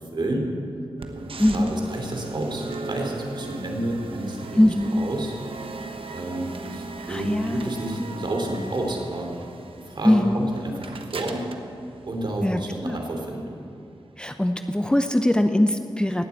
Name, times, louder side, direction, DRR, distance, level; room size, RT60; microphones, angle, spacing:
voice 1, 0.1-0.5 1.1-4.6 4.9-5.3 6.1-9.3 9.9-11.4 12.1-13.5, right 1 dB, 55° right, 2 dB, 2.9 m, -30 dB
sound 1, 1.0-13.0, right 3 dB, 75° right, 1.1 m, -38 dB
voice 2, 1.4-1.8 4.6-5.0 7.1-7.7 8.0-8.1 10.0-10.4 12.4-13.0 14.2-16.3, left 1 dB, 10° left, 7 dB, 0.7 m, -21 dB
18.0 x 7.6 x 8.3 m, 2.5 s
cardioid pair, 70°, 9 cm